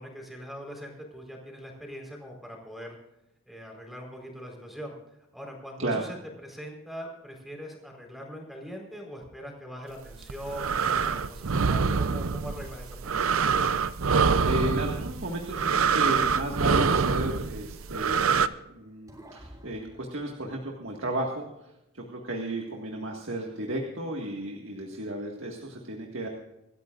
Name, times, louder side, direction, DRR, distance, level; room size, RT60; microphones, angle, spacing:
voice 1, 0.0-2.9 3.5-4.9 5.3-6.2 6.4-13.0, equal, ahead, 0 dB, 4.4 m, -41 dB
sound 1, 10.1-18.5, right 5 dB, 90° right, 0.7 m, -25 dB
voice 2, 14.0-26.3, right 1 dB, 70° right, 0 dB, 1.9 m, -34 dB
sound 2, 16.7-18.6 19.1-20.8, equal, 20° right, 3.4 m, -49 dB
25.5 x 13.5 x 2.6 m, 0.89 s
head